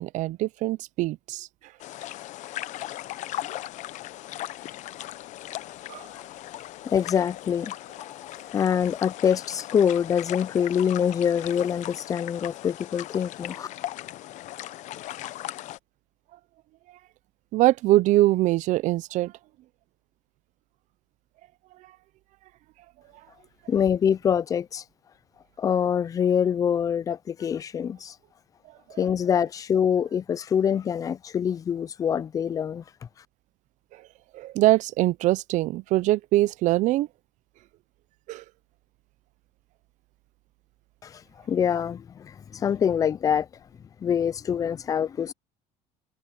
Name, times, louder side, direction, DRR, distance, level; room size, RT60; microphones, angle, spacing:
voice 1, 0.0-1.5 5.9-6.0 17.5-19.3 33.9-34.0 34.3-37.1 38.3-38.4, right 16 dB, 50° right, 0.5 m, -23 dB
sound 1, 1.8-15.8, left 14 dB, 50° left, 0.7 m, -38 dB
voice 2, 6.8-13.7 23.7-24.8 25.6-28.2 29.0-32.8 41.0-41.2 41.5-43.5 44.0-45.3, left 8 dB, 20° left, 0.4 m, -25 dB
cardioid pair, 140°, 16 cm